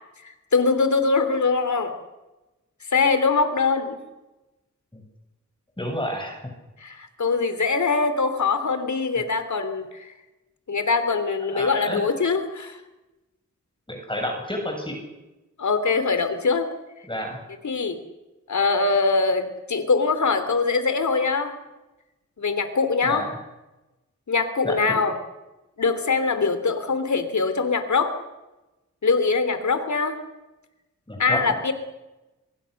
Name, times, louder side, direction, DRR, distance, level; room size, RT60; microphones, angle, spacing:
voice 1, 0.2-1.9 2.9-4.0 6.8-10.1 10.7-12.8 15.6-16.7 17.6-18.0 18.5-21.5 22.4-23.3 24.3-25.1 25.8-28.2 29.0-30.2 31.2-31.7, left 4 dB, 70° left, 10 dB, 3.4 m, -22 dB
voice 2, 5.8-6.4 11.5-12.0 13.9-15.0 17.1-17.4 23.0-23.4 24.6-25.0 31.1-31.6, equal, 15° left, 2 dB, 7.6 m, -30 dB
25.5 x 22.0 x 6.7 m, 1.0 s
cardioid pair, 65°, 30 cm